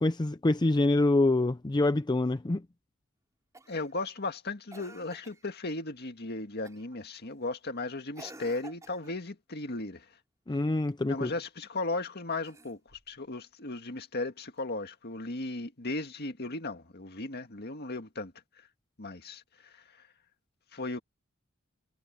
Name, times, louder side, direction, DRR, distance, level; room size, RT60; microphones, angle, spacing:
voice 1, 0.0-2.6 10.5-11.3, left 2 dB, 20° left, 0.5 m, -26 dB
Cough, 3.5-3.9 4.7-5.5 6.7-7.0 8.1-9.2 12.3-13.1 14.6-14.7, right 2 dB, 15° right, 3.6 m, -51 dB
voice 2, 3.7-10.1 11.1-18.3 19.0-19.8 20.7-21.0, left 2 dB, 50° left, 1.9 m, -36 dB
head